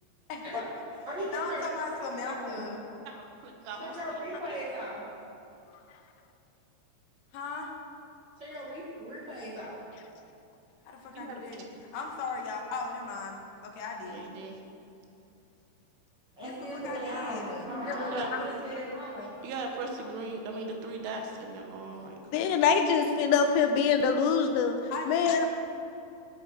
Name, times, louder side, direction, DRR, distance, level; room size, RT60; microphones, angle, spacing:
voice 1, 0.3-0.6 1.3-2.8 7.3-7.7 11.0-11.7 11.9-14.3 16.4-17.7 24.9-25.5, left 4 dB, 70° left, 1 dB, 2.8 m, -38 dB
voice 2, 1.0-2.7 3.8-5.0 8.4-9.8 16.4-19.3, equal, 45° right, -8 dB, 1.4 m, -37 dB
voice 3, 3.1-4.0 4.2-4.4 11.1-11.4 14.1-14.6 17.7-18.5 19.4-22.6, right 3 dB, 80° right, 2 dB, 3.2 m, -38 dB
voice 4, 22.3-24.8 25.1-25.5, left 6 dB, 85° left, 6 dB, 3.0 m, -24 dB
16.5 x 6.9 x 4.7 m, 2.7 s
omnidirectional pair, 5.0 m